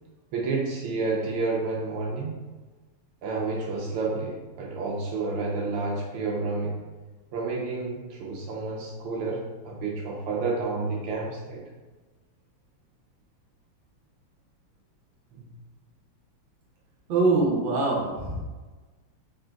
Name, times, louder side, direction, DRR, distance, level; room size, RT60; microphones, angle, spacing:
voice 1, 0.3-2.4 3.2-6.8 7.3-11.6 15.3-15.5, right 3 dB, 85° right, -2 dB, 1.6 m, -30 dB
voice 2, 17.1-18.4, right 3 dB, 65° right, -3 dB, 1.5 m, -23 dB
4.1 x 3.8 x 2.2 m, 1.3 s
omnidirectional pair, 2.4 m